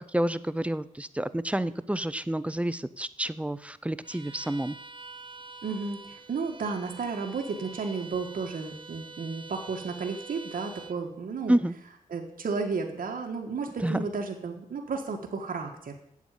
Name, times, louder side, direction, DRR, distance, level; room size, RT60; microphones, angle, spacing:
voice 1, 0.1-4.8 11.5-11.7 13.8-14.0, right 1 dB, 10° right, 15 dB, 0.5 m, -29 dB
Bowed string instrument, 4.0-11.0, right 3 dB, 35° right, 0.8 m, -46 dB
voice 2, 5.6-11.5 12.1-16.0, right 4 dB, 75° right, 2 dB, 1.6 m, -33 dB
8.3 x 7.8 x 8.8 m, 0.72 s
cardioid pair, 75°, 15 cm